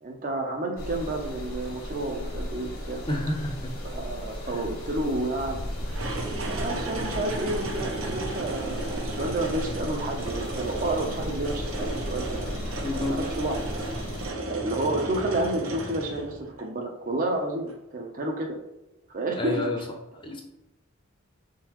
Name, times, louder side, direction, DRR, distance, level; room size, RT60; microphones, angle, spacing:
voice 1, 0.0-3.0 3.8-5.6 6.4-13.6 14.5-18.6 19.1-19.8, right 2 dB, 40° right, 2 dB, 0.7 m, -30 dB
sound 1, 0.8-14.3, left 1 dB, 90° left, 1.3 m, -36 dB
voice 2, 3.1-3.7 4.5-4.6 12.8-13.2 19.4-19.8 20.2-20.4, left 1 dB, 25° left, 2 dB, 0.6 m, -29 dB
sound 2, 5.8-16.6 17.7-17.8, right 2 dB, 75° right, 0.8 m, -34 dB
4.2 x 3.8 x 3.0 m, 0.94 s
head